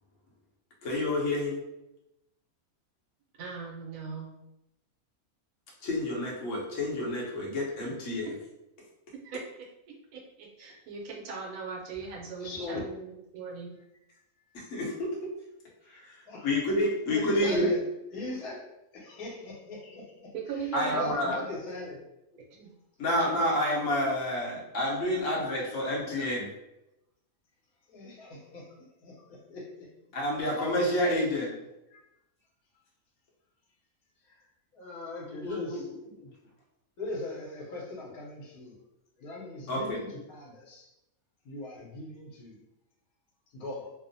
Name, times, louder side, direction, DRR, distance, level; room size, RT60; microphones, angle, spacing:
voice 1, 0.8-1.6 5.8-8.3 14.5-15.1 15.9-17.7 20.7-21.4 23.0-26.5 30.1-31.5 35.4-35.8 39.7-40.0, left 1 dB, 60° left, -3 dB, 1.0 m, -29 dB
voice 2, 3.4-4.3 9.2-9.4 9.9-13.7 20.3-21.4 22.5-22.7, right 5 dB, 80° right, -2 dB, 1.1 m, -39 dB
voice 3, 12.4-12.8 16.2-16.5 16.8-17.8 18.1-18.7 18.9-22.0 25.6-25.7 27.9-29.7 30.4-30.6 31.9-32.0 34.3-34.4 34.7-35.9 37.0-38.8 39.2-40.9 41.4-42.6 43.5-43.9, left 2 dB, 75° left, -3 dB, 1.2 m, -40 dB
2.8 x 2.0 x 2.6 m, 0.91 s
omnidirectional pair, 1.6 m